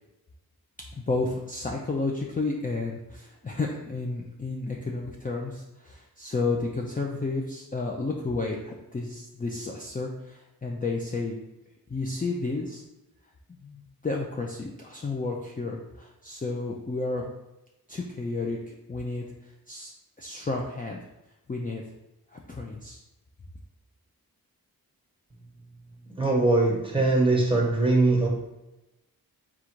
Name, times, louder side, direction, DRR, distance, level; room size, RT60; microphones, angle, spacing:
voice 1, 1.0-11.4 11.9-12.8 13.5-17.3 17.9-21.0 21.5-21.8 22.3-23.0, left 3 dB, 25° left, -1 dB, 0.4 m, -32 dB
voice 2, 26.2-28.3, right 2 dB, 15° right, -1 dB, 1.1 m, -21 dB
3.8 x 2.4 x 4.5 m, 0.94 s
wide cardioid pair, 80°, 38 cm